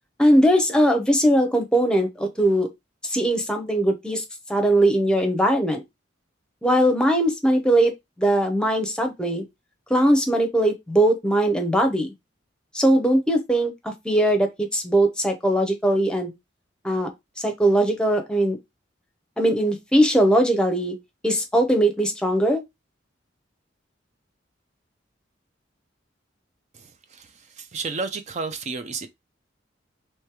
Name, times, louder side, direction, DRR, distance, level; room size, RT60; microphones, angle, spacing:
voice 1, 0.2-2.7 3.0-4.2 4.5-5.8 6.6-7.9 8.2-9.4 9.9-12.1 12.7-16.3 16.8-17.1 17.4-18.6 19.4-20.9 21.2-22.6, right 1 dB, 5° left, 0.8 m, -20 dB
voice 2, 27.6-29.1, right 4 dB, 40° right, 0.5 m, -30 dB
3.2 x 3.2 x 4.6 m
head